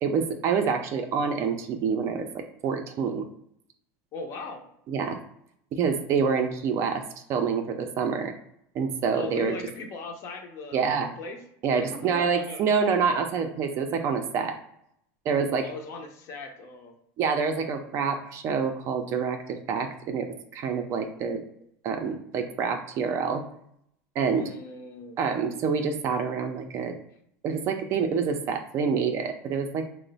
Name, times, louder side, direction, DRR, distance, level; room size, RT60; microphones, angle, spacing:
voice 1, 0.0-3.3 4.9-5.2 5.7-7.0 7.3-8.3 8.7-9.5 10.7-11.1 11.6-14.6 15.3-15.7 17.2-21.4 21.8-23.4 24.2-24.5 25.2-27.0 27.4-29.9, right 6 dB, 40° right, 5 dB, 0.4 m, -27 dB
voice 2, 4.1-4.6 9.1-11.4 11.7-12.6 15.6-16.9 24.3-25.2, left 3 dB, 40° left, 4 dB, 0.6 m, -39 dB
2.8 x 2.0 x 3.9 m, 0.73 s
supercardioid pair, 150°, 7 cm